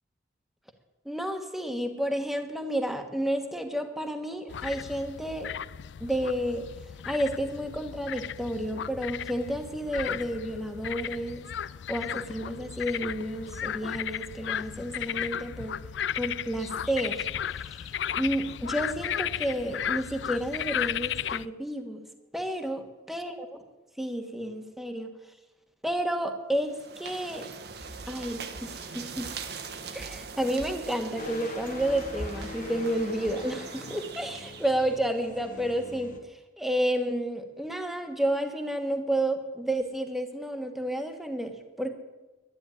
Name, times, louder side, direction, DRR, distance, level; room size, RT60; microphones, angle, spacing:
voice 1, 1.0-5.5 6.0-6.7 7.0-11.4 11.9-15.8 16.2-17.9 18.1-22.0 22.3-23.3 24.0-25.1 25.8-27.5 28.1-29.3 29.9-41.9, right 1 dB, ahead, 5 dB, 1.4 m, -31 dB
sound 1, 4.5-21.5, left 9 dB, 80° left, 0.4 m, -35 dB
sound 2, 26.6-35.1, right 4 dB, 65° right, 1.4 m, -41 dB
sound 3, 31.2-36.2, left 3 dB, 50° left, 1.6 m, -44 dB
11.5 x 11.0 x 9.8 m, 1.1 s
head